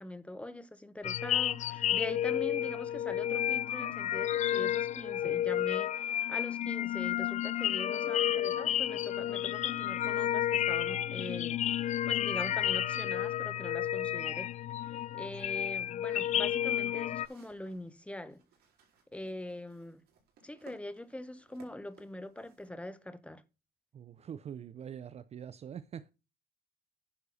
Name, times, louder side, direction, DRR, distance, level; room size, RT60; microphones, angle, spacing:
voice 1, 0.0-14.5 14.9-18.4 19.1-20.0 20.4-23.4, left 1 dB, 5° left, 1.2 m, -43 dB
sound 1, 1.0-17.3, left 11 dB, 45° left, 0.4 m, -31 dB
sound 2, 16.3-22.7, right 6 dB, 70° right, 4.3 m, -63 dB
voice 2, 23.9-26.1, right 8 dB, 40° right, 0.6 m, -44 dB
10.0 x 6.3 x 4.2 m
cardioid pair, 110°, 17 cm